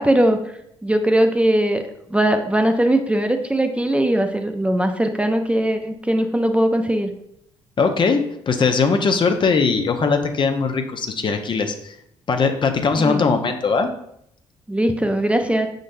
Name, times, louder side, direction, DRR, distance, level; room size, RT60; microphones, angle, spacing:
voice 1, 0.0-1.8 2.1-7.1 13.0-13.3 14.7-15.7, right 1 dB, 10° right, 6 dB, 0.5 m, -20 dB
voice 2, 7.8-12.0 12.3-13.9, left 4 dB, 40° left, 6 dB, 0.6 m, -20 dB
5.2 x 3.9 x 2.6 m, 0.75 s
hypercardioid pair, 55°, 12 cm